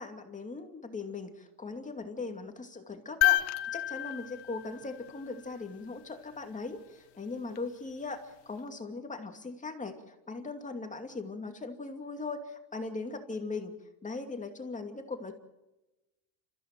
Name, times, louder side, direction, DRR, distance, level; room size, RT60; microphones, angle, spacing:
voice 1, 0.0-13.7 14.0-15.4, left 3 dB, 15° left, 5 dB, 2.5 m, -39 dB
sound 1, 3.2-5.5 7.5-7.6, left 17 dB, 65° left, 1.2 m, -30 dB
29.0 x 15.0 x 7.6 m, 1.0 s
cardioid pair, 135°, 45 cm